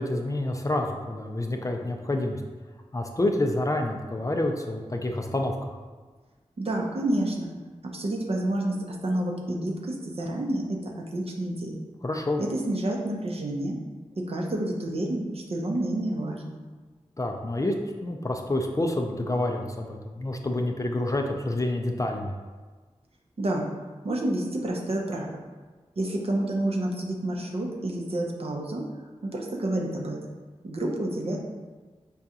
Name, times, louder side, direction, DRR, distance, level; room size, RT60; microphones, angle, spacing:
voice 1, 0.0-2.4 2.9-5.8 12.0-12.4 17.2-17.7 18.0-22.3, left 1 dB, 25° left, 3 dB, 0.4 m, -28 dB
voice 2, 6.6-7.5 7.8-11.8 12.4-13.8 14.1-16.4 23.4-23.7 24.0-25.3 26.0-28.8 29.2-30.2 30.6-31.4, right 1 dB, 55° right, -1 dB, 0.6 m, -29 dB
4.8 x 2.3 x 2.7 m, 1.3 s
cardioid pair, 45°, 12 cm